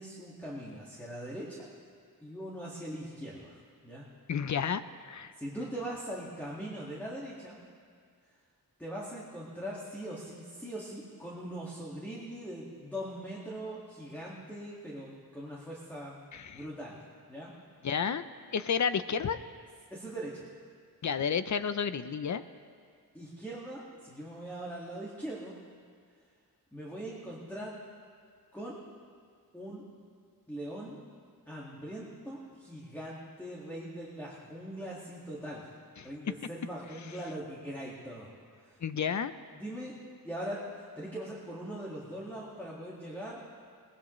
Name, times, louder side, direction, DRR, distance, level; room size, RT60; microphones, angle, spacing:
voice 1, 0.0-1.7 2.2-4.1 5.4-7.6 8.8-16.2 16.5-17.0 17.3-17.5 19.9-20.5 23.1-25.6 26.7-27.7 28.5-28.8 29.5-29.9 30.5-31.0 31.5-35.7 36.0-38.3 38.6-38.8 39.5-40.0 40.2-43.4, right 1 dB, 5° left, -5 dB, 1.9 m, -41 dB
voice 2, 4.3-5.3 16.3-16.6 17.8-18.2 18.5-19.4 21.0-22.4 36.0-36.1 38.8-39.3, left 7 dB, 50° left, 12 dB, 0.6 m, -31 dB
23.0 x 19.0 x 3.2 m, 2.1 s
wide cardioid pair, 155°, 37 cm